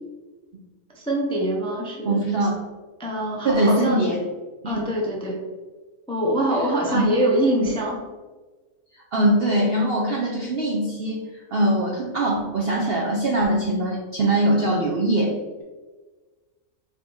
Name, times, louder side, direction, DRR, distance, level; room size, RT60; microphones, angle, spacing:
voice 1, 0.9-2.2 3.0-4.1 4.6-5.4 6.1-8.0, right 1 dB, 10° left, -2 dB, 0.3 m, -24 dB
voice 2, 2.1-2.5 3.4-4.2 4.6-4.8 6.9-7.0 7.6-7.7 9.1-15.3, right 1 dB, 60° right, -2 dB, 0.6 m, -22 dB
4.4 x 2.9 x 3.8 m, 1.3 s
omnidirectional pair, 1.6 m